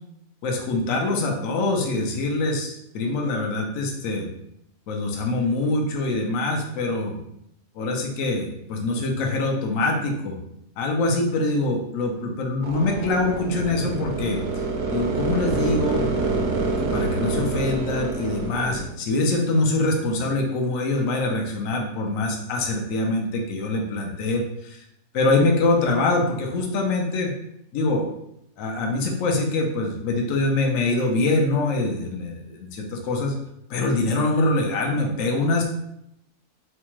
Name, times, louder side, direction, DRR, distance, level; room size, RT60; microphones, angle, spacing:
voice 1, 0.4-4.3 4.9-7.2 7.8-10.4 10.8-14.4 14.9-16.1 16.8-24.8 25.1-27.3 27.7-28.1 28.6-33.3 33.7-35.6, left 2 dB, 65° left, 1 dB, 1.0 m, -24 dB
sound 1, 12.6-18.8, right 3 dB, 75° right, 1.1 m, -26 dB
4.3 x 2.3 x 3.0 m, 0.78 s
omnidirectional pair, 1.6 m